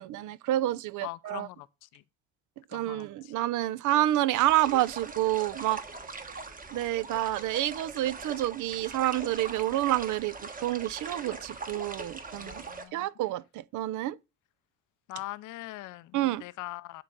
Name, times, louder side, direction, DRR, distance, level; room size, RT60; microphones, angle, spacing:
voice 1, 0.0-1.5 2.7-5.8 6.7-12.6 12.9-14.2 16.1-16.4, right 15 dB, 80° right, 0.5 m, -28 dB
voice 2, 1.0-1.7 1.9-2.0 2.7-3.3 12.4-13.0 15.1-17.0, left 18 dB, 90° left, 0.6 m, -42 dB
sound 1, 4.3-12.8, right 4 dB, 30° right, 1.2 m, -41 dB
10.0 x 3.7 x 5.3 m
cardioid pair, 90°, 30 cm